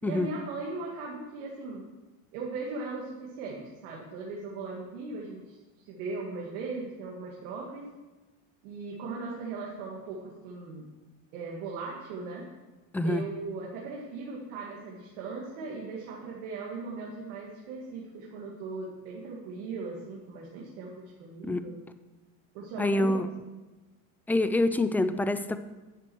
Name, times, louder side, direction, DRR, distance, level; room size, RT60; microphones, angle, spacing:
voice 1, 0.0-1.9 2.3-5.6 5.8-7.8 8.6-10.9 11.3-12.5 13.0-21.8 22.5-23.2, right 3 dB, 75° right, -3 dB, 2.4 m, -38 dB
voice 2, 22.8-23.3 24.3-25.6, left 2 dB, 5° left, 11 dB, 0.5 m, -26 dB
11.0 x 7.5 x 6.3 m, 1.2 s
supercardioid pair, 110°, 42 cm